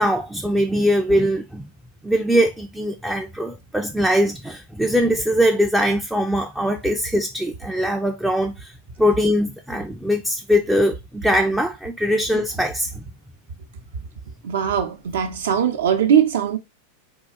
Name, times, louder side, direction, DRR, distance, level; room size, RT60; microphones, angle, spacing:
voice 1, 0.0-1.7 2.0-13.0, equal, 5° right, 0.4 m, -21 dB
voice 2, 14.4-16.6, right 8 dB, 60° right, 0.7 m, -20 dB
3.8 x 2.4 x 3.5 m
figure-of-eight pair, 90°, 0 cm